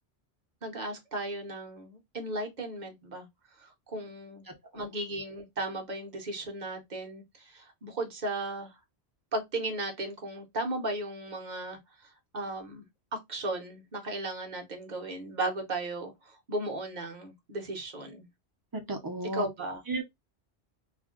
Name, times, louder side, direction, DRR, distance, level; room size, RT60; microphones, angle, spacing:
voice 1, 0.6-3.3 3.6-4.5 4.7-8.8 9.3-12.9 13.1-18.3 19.3-19.8, right 2 dB, 45° right, 0.9 m, -36 dB
voice 2, 4.5-4.8 18.7-19.5 19.9-20.0, right 2 dB, 25° right, 0.6 m, -34 dB
2.5 x 2.1 x 3.6 m
omnidirectional pair, 1.1 m